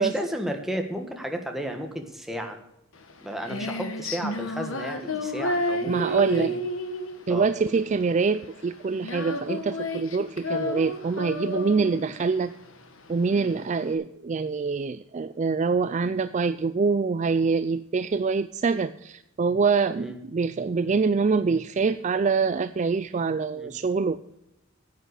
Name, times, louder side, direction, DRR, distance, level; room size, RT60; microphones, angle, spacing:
voice 1, 0.0-2.6 3.2-6.6 7.3-7.5 7.7-7.8 13.3-13.5 16.0-16.1 20.0-20.2 23.6-23.7, equal, ahead, 3 dB, 1.4 m, -33 dB
Female singing, 2.9-13.9, left 1 dB, 75° left, 1.5 m, -31 dB
voice 2, 5.9-6.5 7.3-12.5 13.1-24.2, right 4 dB, 35° right, 13 dB, 0.3 m, -25 dB
10.5 x 8.9 x 6.5 m, 0.84 s
head